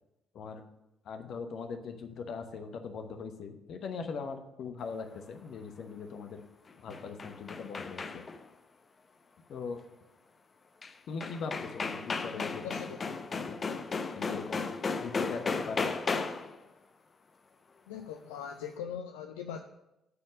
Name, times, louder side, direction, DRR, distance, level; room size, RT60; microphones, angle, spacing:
voice 1, 1.1-6.4 6.8-8.2 9.5-9.8 11.1-12.8 13.3-13.6 14.1-14.7 15.0-15.9, left 5 dB, 60° left, 7 dB, 1.0 m, -40 dB
sound 1, 6.7-8.5 10.8-10.9 11.2-16.6, left 4 dB, 40° left, 0.7 m, -35 dB
voice 2, 12.3-13.1 17.9-19.6, left 8 dB, 75° left, 5 dB, 0.4 m, -41 dB
9.8 x 4.4 x 7.3 m, 0.92 s
figure-of-eight pair, 45°, 0 cm